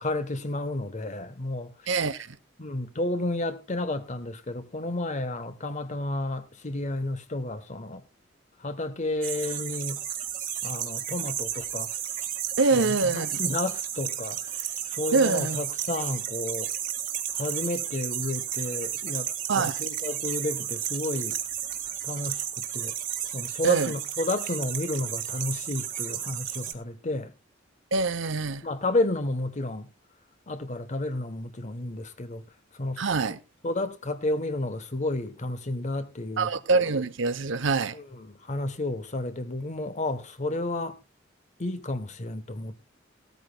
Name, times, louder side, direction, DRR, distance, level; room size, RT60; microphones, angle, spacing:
voice 1, 0.0-1.7 2.6-8.0 8.6-10.0 10.6-11.9 12.7-16.7 17.3-21.4 22.0-22.9 23.3-27.3 28.6-29.9 30.5-32.4 32.8-33.0 33.6-36.5 37.9-41.0 41.6-42.9, left 2 dB, 40° left, 1.1 m, -31 dB
voice 2, 1.9-2.4 12.6-13.4 15.1-15.6 19.5-19.8 23.6-23.9 27.9-28.6 33.0-33.4 36.4-38.0, right 4 dB, 70° right, 0.8 m, -25 dB
sound 1, 9.2-26.7, right 10 dB, 45° right, 1.7 m, -33 dB
17.0 x 13.5 x 2.2 m
head